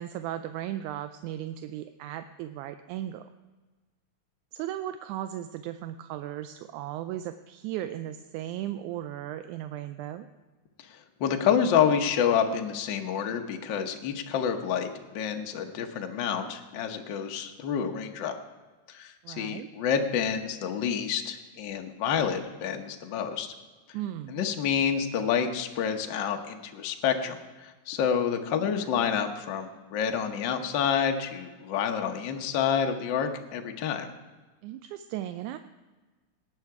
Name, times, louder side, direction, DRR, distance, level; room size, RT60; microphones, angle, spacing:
voice 1, 0.0-3.3 4.5-10.3 19.2-19.7 23.9-24.4 34.6-35.6, right 12 dB, 85° right, 10 dB, 1.9 m, -36 dB
voice 2, 11.2-14.9 15.1-18.4 18.9-23.5 24.3-34.1, left 7 dB, 80° left, 4 dB, 1.0 m, -28 dB
18.0 x 8.9 x 4.7 m, 1.3 s
omnidirectional pair, 3.5 m